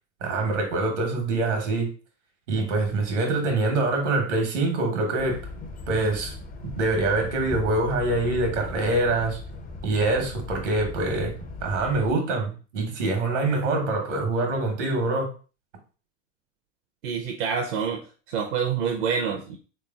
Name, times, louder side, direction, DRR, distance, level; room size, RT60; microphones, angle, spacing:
voice 1, 0.2-1.9 2.5-5.4 5.9-6.3 6.6-9.4 9.8-11.3 11.6-15.3, right 2 dB, 85° right, 3 dB, 1.2 m, -25 dB
sound 1, 5.2-12.1, left 3 dB, 25° left, 0.5 m, -38 dB
voice 2, 17.0-19.6, right 6 dB, 65° right, 2 dB, 0.6 m, -27 dB
3.4 x 3.1 x 2.3 m, 0.36 s
hypercardioid pair, 90°, 36 cm